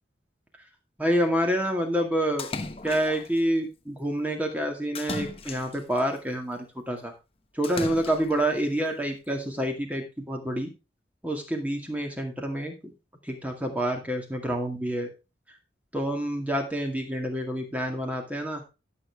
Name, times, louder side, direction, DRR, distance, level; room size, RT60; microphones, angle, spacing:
voice 1, 1.0-2.5 2.8-6.6 6.9-7.1 7.6-10.7 11.2-12.9 13.3-15.1 15.9-18.6, right 1 dB, 10° right, 3 dB, 2.0 m, -28 dB
Splash splatter, 2.4-3.4 4.9-6.0 7.6-8.5, left 3 dB, 35° left, 1.0 m, -36 dB
12.5 x 6.9 x 3.5 m, 0.28 s
head